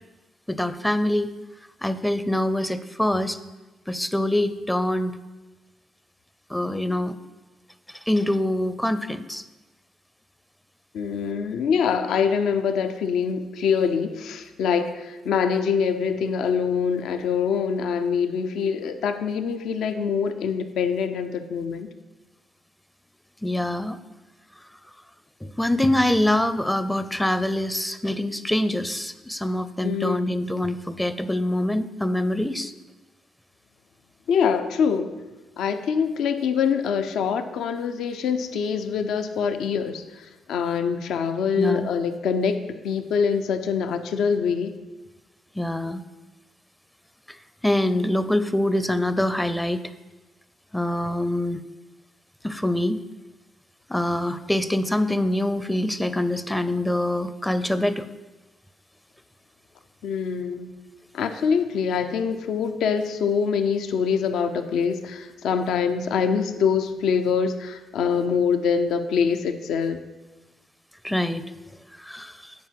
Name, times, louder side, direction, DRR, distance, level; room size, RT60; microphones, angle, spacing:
voice 1, 0.5-1.3 1.8-3.4 3.9-5.2 6.5-7.1 8.1-9.4 23.4-24.0 25.4-32.7 41.5-41.9 45.5-46.0 47.3-47.4 47.6-49.8 50.7-51.6 52.4-53.0 53.9-58.1 71.0-71.4 72.0-72.5, left 1 dB, 5° left, 12 dB, 0.5 m, -24 dB
voice 2, 10.9-21.9 29.8-30.4 34.3-35.1 35.6-42.5 42.8-44.7 60.0-60.7 61.1-70.0, left 6 dB, 75° left, 8 dB, 0.6 m, -24 dB
8.8 x 4.6 x 7.4 m, 1.2 s
cardioid pair, 90°, 0 cm